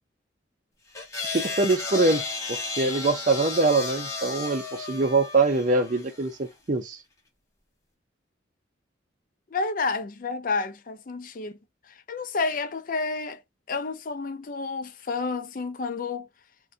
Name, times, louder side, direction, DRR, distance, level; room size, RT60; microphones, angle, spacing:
sound 1, 0.9-6.3, left 4 dB, 15° left, 1.0 m, -33 dB
voice 1, 1.3-2.2 2.5-7.0, right 3 dB, 40° right, 0.5 m, -24 dB
voice 2, 9.5-11.6 11.9-13.4 13.7-16.3, left 4 dB, 45° left, 0.4 m, -30 dB
3.8 x 2.2 x 2.5 m
head